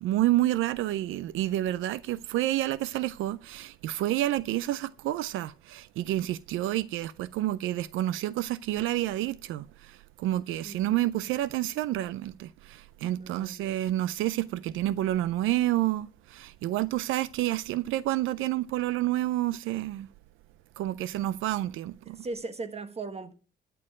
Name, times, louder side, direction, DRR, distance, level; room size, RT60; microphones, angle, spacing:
voice 1, 0.0-20.1 20.8-22.2, right 14 dB, 85° right, 0.5 m, -29 dB
voice 2, 13.2-13.5 22.1-23.3, right 3 dB, 30° right, 1.4 m, -38 dB
12.5 x 6.9 x 5.0 m
cardioid pair, 90°, 20 cm